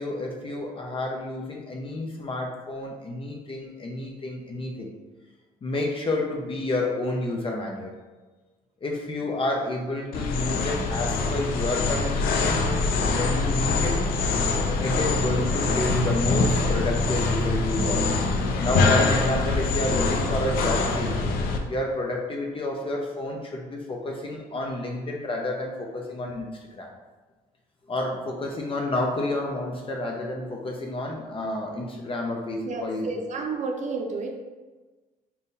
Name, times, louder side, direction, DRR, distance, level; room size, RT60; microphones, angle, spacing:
voice 1, 0.0-4.9 5.6-8.0 8.8-12.6 13.1-14.0 14.8-18.1 18.6-21.2 21.7-26.9 27.9-33.3, left 2 dB, 35° left, 0 dB, 0.6 m, -30 dB
sound 1, 10.1-21.6, left 3 dB, 85° left, 0.5 m, -24 dB
voice 2, 32.7-34.4, right 3 dB, 55° right, 1 dB, 0.5 m, -31 dB
3.6 x 2.3 x 4.0 m, 1.3 s
cardioid pair, 90°, 15 cm